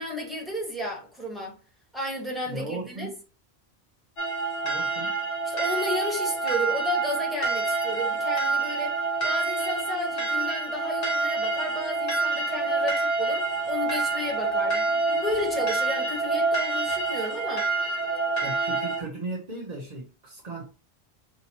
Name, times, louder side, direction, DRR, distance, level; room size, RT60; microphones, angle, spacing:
voice 1, 0.0-1.6 1.9-3.1 5.4-8.9 9.2-17.7 18.4-18.5, left 1 dB, ahead, 1.3 m, -32 dB
voice 2, 2.5-3.2 4.6-5.2 18.4-20.6, right 2 dB, 40° right, 0.9 m, -36 dB
sound 1, 4.2-19.0, right 3 dB, 75° left, 1.4 m, -27 dB
4.9 x 2.8 x 2.8 m
omnidirectional pair, 1.1 m